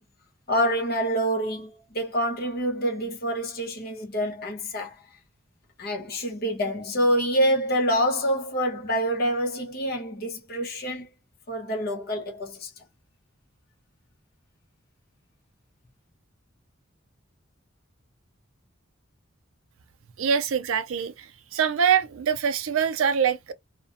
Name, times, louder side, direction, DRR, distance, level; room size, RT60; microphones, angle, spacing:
voice 1, 0.5-4.9 5.8-11.1 11.5-12.7, equal, 45° left, 0.8 m, -26 dB
voice 2, 20.2-21.3 21.5-23.5, right 7 dB, 80° right, 0.4 m, -24 dB
2.5 x 2.1 x 2.5 m
head